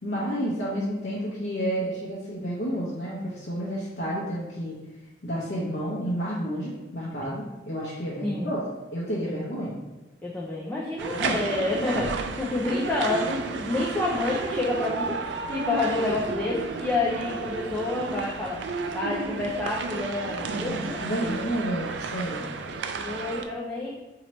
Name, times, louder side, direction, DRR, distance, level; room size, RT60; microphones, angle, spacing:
voice 1, 0.0-4.8 5.2-9.8 11.0-11.4 20.7-22.5, equal, 75° left, -8 dB, 0.8 m, -30 dB
voice 2, 10.2-18.6 18.9-21.5 22.4-24.0, left 2 dB, 10° left, -5 dB, 0.4 m, -29 dB
sound 1, 11.0-23.4, right 4 dB, 80° right, 0.3 m, -32 dB
3.0 x 2.9 x 4.2 m, 1.1 s
head